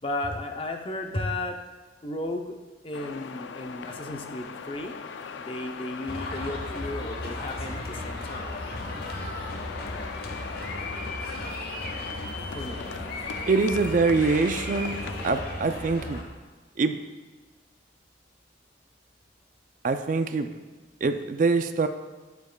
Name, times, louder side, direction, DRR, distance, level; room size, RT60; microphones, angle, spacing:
voice 1, 0.0-1.6 2.0-2.6 2.8-5.0 5.4-8.6 12.5-12.8, left 2 dB, 30° left, 4 dB, 0.6 m, -34 dB
sound 1, 2.9-15.5, left 5 dB, 80° left, 0.4 m, -40 dB
sound 2, 6.1-16.2, left 1 dB, 55° left, 1.1 m, -35 dB
voice 2, 13.5-15.0 15.2-16.2 16.8-17.0 19.8-20.5 21.0-21.9, right 4 dB, 45° right, 9 dB, 0.4 m, -24 dB
10.5 x 8.0 x 2.3 m, 1.3 s
head